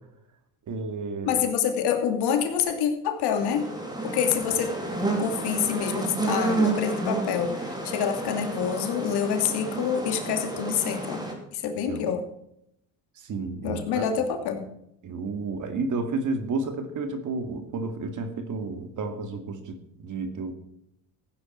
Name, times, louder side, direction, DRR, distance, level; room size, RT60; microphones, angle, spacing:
voice 1, 0.7-1.4 11.8-12.1 13.2-14.0 15.0-20.5, right 3 dB, 45° right, 7 dB, 2.4 m, -31 dB
voice 2, 1.2-3.7 4.0-4.7 5.2-11.2 11.5-12.2 13.6-14.6, left 7 dB, 70° left, 6 dB, 2.7 m, -27 dB
sound 1, 3.4-11.3, right 2 dB, 10° right, 3.4 m, -30 dB
15.5 x 9.8 x 4.5 m, 0.76 s
cardioid pair, 125°, 41 cm